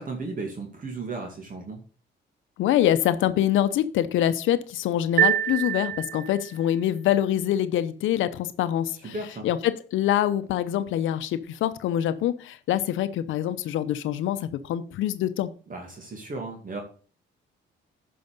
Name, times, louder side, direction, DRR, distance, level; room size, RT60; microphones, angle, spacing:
voice 1, 0.0-1.8 9.1-9.5 15.7-16.8, right 3 dB, 45° right, 2.3 m, -35 dB
voice 2, 2.6-9.1 9.4-15.5, left 11 dB, 80° left, 0.7 m, -25 dB
sound 1, 5.2-6.6, right 10 dB, 80° right, 0.8 m, -25 dB
9.5 x 5.6 x 5.3 m
cardioid pair, 80°, 20 cm